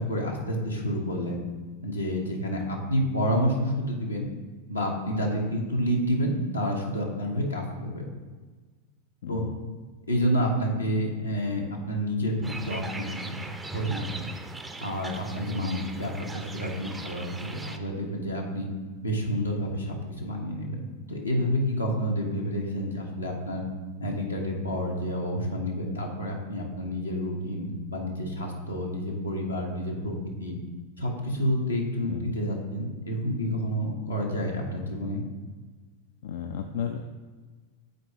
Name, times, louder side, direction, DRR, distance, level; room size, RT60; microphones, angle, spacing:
voice 1, 0.0-1.4 1.8-4.3 4.7-8.1 9.3-9.4 10.1-14.3 14.8-18.7 19.0-20.8 21.1-23.6 24.0-30.6 31.0-35.2, equal, 85° left, -1 dB, 1.2 m, -29 dB
sound 1, 12.4-17.8, right 2 dB, 10° right, 0.5 m, -39 dB
voice 2, 15.6-16.0 32.1-32.3 36.2-37.0, left 7 dB, 55° left, 5 dB, 0.3 m, -33 dB
8.0 x 4.6 x 2.9 m, 1.4 s
figure-of-eight pair, 90°, 0 cm